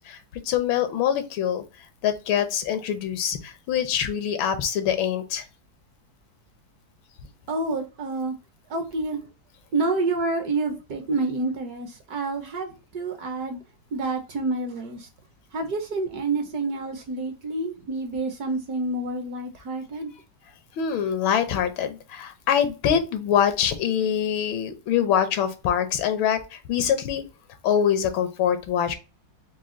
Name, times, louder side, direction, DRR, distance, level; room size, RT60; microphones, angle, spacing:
voice 1, 0.4-1.6 2.0-5.4 20.8-27.2 27.6-28.9, left 9 dB, 85° left, 1.6 m, -24 dB
voice 2, 7.5-8.3 8.7-9.3 9.7-13.6 13.9-15.1 15.5-20.1, right 3 dB, 60° right, 1.2 m, -28 dB
4.8 x 2.3 x 3.7 m
omnidirectional pair, 2.1 m